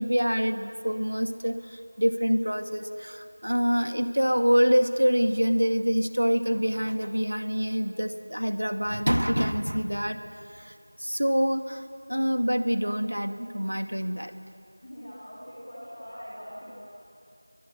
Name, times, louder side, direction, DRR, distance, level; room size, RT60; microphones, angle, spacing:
voice 1, 0.0-10.2 10.6-10.7 11.0-11.8 12.1-14.3, equal, 90° right, 7 dB, 2.0 m, -26 dB
voice 2, 14.8-16.9, equal, 15° left, -6 dB, 2.6 m, -42 dB
28.5 x 23.0 x 7.3 m, 2.6 s
figure-of-eight pair, 180°, 0 cm